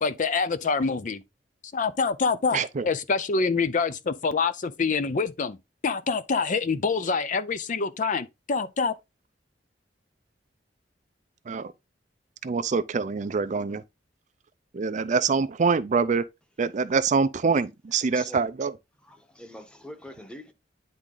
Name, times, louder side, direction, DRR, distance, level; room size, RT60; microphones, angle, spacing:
voice 1, 0.0-1.2 1.7-5.6 5.8-8.9, left 4 dB, 45° left, 0.5 m, -26 dB
voice 2, 2.5-2.9 11.5-11.7 12.4-13.8 14.7-16.2 16.6-18.7, right 5 dB, 40° right, 0.4 m, -25 dB
voice 3, 19.0-20.5, equal, 5° left, 1.1 m, -43 dB
9.8 x 3.6 x 3.8 m
head